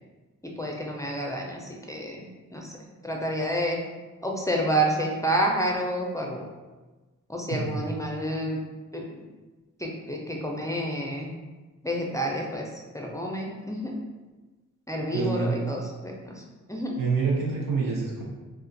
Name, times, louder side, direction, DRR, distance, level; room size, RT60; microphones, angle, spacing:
voice 1, 0.6-2.7 3.0-3.8 4.2-6.5 7.3-8.6 8.9-9.0 9.8-11.3 11.8-12.7 12.9-14.0 14.9-16.3 16.7-16.9, right 1 dB, 10° left, -1 dB, 0.5 m, -29 dB
voice 2, 15.1-15.7 17.0-18.2, right 4 dB, 85° right, -3 dB, 0.9 m, -27 dB
2.5 x 2.4 x 3.9 m, 1.2 s
cardioid pair, 70°, 32 cm